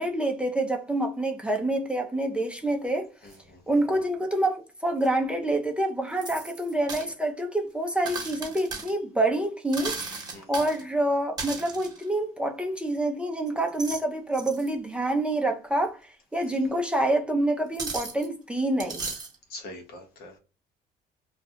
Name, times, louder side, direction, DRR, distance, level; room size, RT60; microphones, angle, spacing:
voice 1, 0.0-3.1 3.7-19.0, right 1 dB, 5° right, 0.4 m, -27 dB
sound 1, 2.5-2.6 3.3-3.4 5.0-5.1 6.2-7.1 8.1-8.9 9.7-10.8 11.4-12.0 13.5-14.0 14.3-14.7 16.4-16.5 17.7-18.3 18.8-19.4, right 4 dB, 25° right, 1.0 m, -36 dB
voice 2, 3.2-3.6 10.3-10.5 16.4-16.5 19.5-20.4, left 1 dB, 65° left, 0.9 m, -44 dB
2.2 x 2.2 x 2.7 m
cardioid pair, 110°, 17 cm